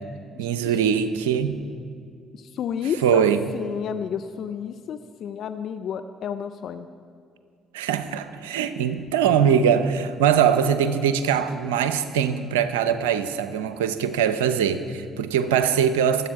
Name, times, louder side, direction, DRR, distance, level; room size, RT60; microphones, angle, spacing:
voice 1, 0.4-1.6 3.0-3.4 7.7-16.3, right 8 dB, 85° right, 0.6 m, -22 dB
voice 2, 2.3-3.2 3.5-6.9, left 8 dB, 65° left, 0.5 m, -31 dB
23.5 x 8.0 x 4.7 m
hypercardioid pair, 50°, 0 cm